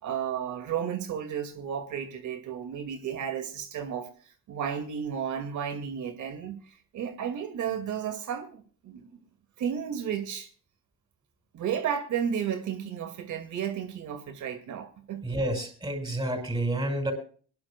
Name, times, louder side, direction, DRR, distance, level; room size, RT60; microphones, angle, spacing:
voice 1, 0.0-4.1 4.5-9.2 9.6-10.5 11.5-15.2, right 8 dB, 75° right, 2.3 m, -33 dB
voice 2, 15.2-17.1, right 1 dB, 15° right, 5.9 m, -29 dB
23.5 x 11.0 x 2.3 m
cardioid pair, 90°, 30 cm